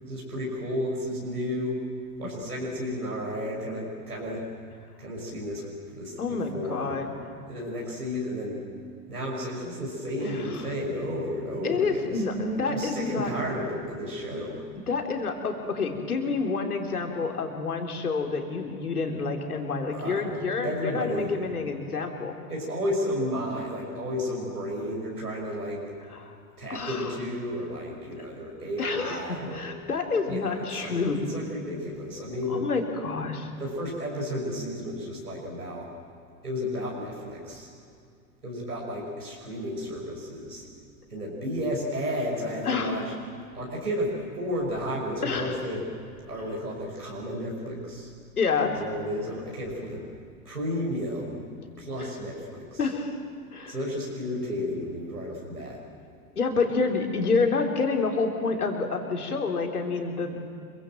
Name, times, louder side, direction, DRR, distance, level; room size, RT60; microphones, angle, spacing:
voice 1, 0.0-1.8 2.2-4.5 5.0-5.7 6.0-6.9 7.5-8.6 9.1-12.2 12.6-14.6 19.9-21.3 22.5-25.9 26.6-29.6 30.3-32.6 33.6-35.9 36.4-37.7 38.4-40.6 41.1-43.0 43.5-45.9 46.3-48.1 48.7-50.0 50.4-51.4 51.8-52.8 53.7-55.8, equal, 85° right, -3 dB, 6.2 m, -32 dB
voice 2, 6.2-7.1 10.2-10.6 11.6-13.3 14.9-22.4 26.1-26.3 26.7-27.1 28.8-31.2 32.5-33.5 42.6-43.0 45.2-45.6 48.4-48.8 52.0-52.1 52.8-53.2 53.5-53.7 56.4-60.5, left 4 dB, 70° left, 3 dB, 3.6 m, -28 dB
27.0 x 24.0 x 7.8 m, 2.4 s
figure-of-eight pair, 90°, 46 cm